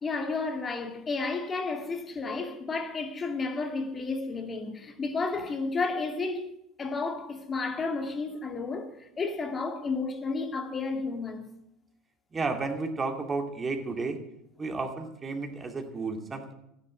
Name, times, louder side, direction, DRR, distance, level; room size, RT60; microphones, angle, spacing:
voice 1, 0.0-6.5 6.8-11.5, left 3 dB, 30° left, 2.3 m, -32 dB
voice 2, 12.3-14.2 14.6-16.5, right 3 dB, 25° right, 2.6 m, -32 dB
14.5 x 10.5 x 7.9 m
hypercardioid pair, 75°, 0 cm